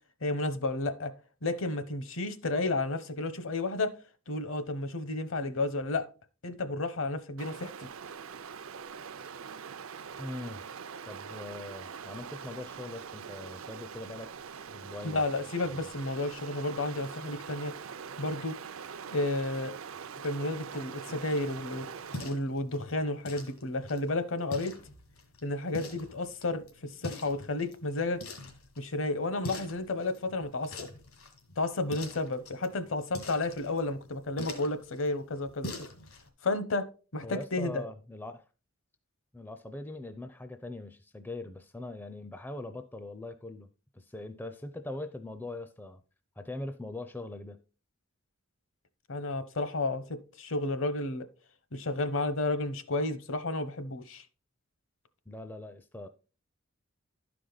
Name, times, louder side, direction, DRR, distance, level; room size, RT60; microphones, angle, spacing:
voice 1, 0.2-1.1 1.4-3.9 4.3-6.1 6.4-7.9 15.0-17.7 18.2-18.6 19.1-19.7 20.2-21.9 22.2-24.7 25.4-28.2 28.8-30.9 31.6-35.9 36.4-36.8 37.1-37.8 49.1-51.3 51.7-54.2, left 2 dB, 65° left, 0.9 m, -32 dB
Stream, 7.4-22.4, right 6 dB, 70° right, 0.5 m, -43 dB
voice 2, 10.2-10.8 11.0-15.2 15.6-15.9 37.2-38.4 39.3-46.0 46.4-47.6 55.3-56.1, left 2 dB, 10° left, 0.4 m, -42 dB
sound 1, 21.1-36.3, left 2 dB, 80° left, 1.9 m, -45 dB
12.0 x 5.0 x 3.9 m
head